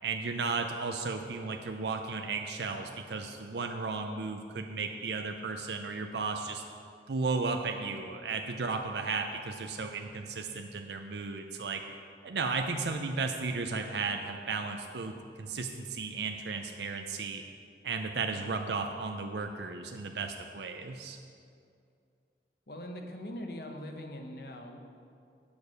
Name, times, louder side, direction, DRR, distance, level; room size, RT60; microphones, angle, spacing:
voice 1, 0.0-6.6 7.1-11.8 12.2-17.4 17.8-21.2, right 4 dB, 75° right, 5 dB, 0.5 m, -34 dB
voice 2, 22.7-24.8, left 1 dB, 60° left, 3 dB, 1.0 m, -41 dB
8.5 x 7.0 x 6.5 m, 2.4 s
head